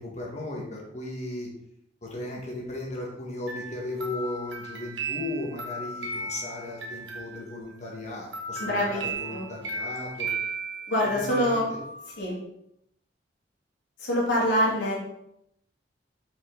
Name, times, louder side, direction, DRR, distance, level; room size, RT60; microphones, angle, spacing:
voice 1, 0.0-1.5 2.0-10.3 11.3-11.6, left 2 dB, 40° left, -2 dB, 1.6 m, -36 dB
sound 1, 3.5-7.8 8.3-12.3, right 3 dB, 85° right, 1.3 m, -35 dB
voice 2, 8.6-9.0 9.3-9.5 10.9-11.7 12.2-12.4 14.0-15.0, equal, 75° left, -6 dB, 2.4 m, -25 dB
5.6 x 5.6 x 3.9 m, 0.79 s
head